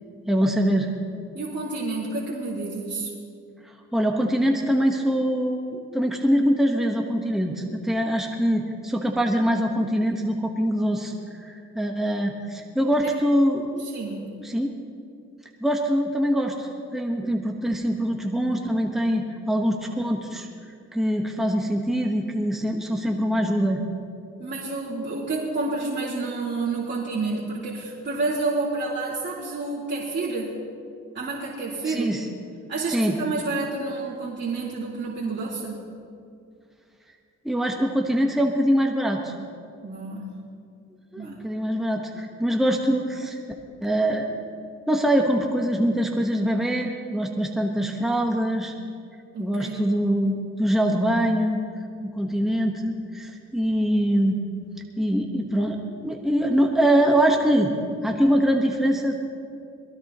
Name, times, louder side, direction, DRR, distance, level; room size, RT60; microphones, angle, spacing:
voice 1, 0.3-0.9 3.6-13.7 14.4-14.7 15.6-20.5 20.9-23.8 31.8-32.3 32.9-33.2 37.4-39.3 41.1-43.4 43.8-44.3 44.9-48.7 49.4-51.6 52.1-54.4 55.0-57.7 58.0-59.1, equal, ahead, 1 dB, 1.3 m, -23 dB
voice 2, 1.3-3.1 13.9-14.3 24.4-30.6 31.1-32.2 32.7-35.8 39.8-40.3 41.2-41.4 49.3-49.8, right 3 dB, 40° right, -8 dB, 3.6 m, -29 dB
22.0 x 16.0 x 3.1 m, 2.4 s
cardioid pair, 90°, 30 cm